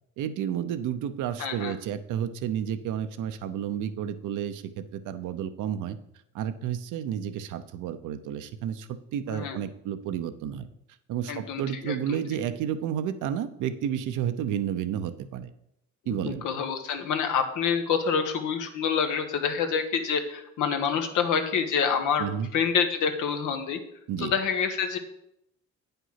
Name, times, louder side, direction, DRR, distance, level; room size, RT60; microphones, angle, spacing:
voice 1, 0.2-6.0 6.3-10.7 11.1-15.5 16.1-16.4 22.2-22.5 24.1-24.3, right 9 dB, 85° right, 10 dB, 0.7 m, -31 dB
voice 2, 1.4-1.7 9.3-9.6 11.3-12.2 16.1-22.2 22.5-23.8 24.2-25.0, left 6 dB, 90° left, 6 dB, 1.2 m, -27 dB
9.0 x 5.6 x 5.7 m, 0.79 s
cardioid pair, 90°, 30 cm